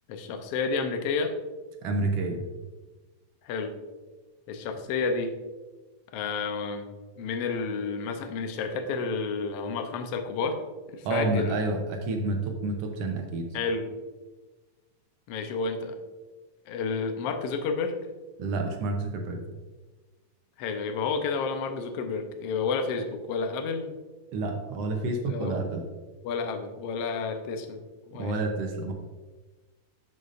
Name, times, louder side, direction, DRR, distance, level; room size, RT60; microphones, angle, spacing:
voice 1, 0.1-1.3 3.4-3.7 4.5-5.3 6.1-6.9 7.2-10.6 10.9-11.6 13.5-13.9 15.3-16.0 16.7-18.0 20.6-23.9 25.3-25.6 26.2-28.4, left 4 dB, 80° left, 6 dB, 1.4 m, -30 dB
voice 2, 1.8-2.4 11.0-13.5 18.4-19.4 24.3-25.8 28.2-28.9, right 2 dB, 70° right, 3 dB, 1.5 m, -29 dB
10.5 x 6.7 x 2.5 m, 1.2 s
omnidirectional pair, 3.6 m